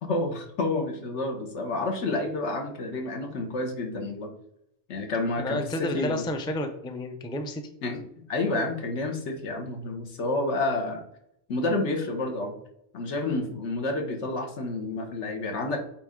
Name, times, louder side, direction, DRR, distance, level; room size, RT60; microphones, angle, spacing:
voice 1, 0.0-4.3 4.9-6.3 7.8-8.0 8.3-11.0 11.5-12.5 12.9-15.8, left 2 dB, 80° left, 3 dB, 1.4 m, -29 dB
voice 2, 5.4-7.6, left 1 dB, 10° left, 5 dB, 0.3 m, -31 dB
8.2 x 3.1 x 3.7 m, 0.76 s
omnidirectional pair, 1.2 m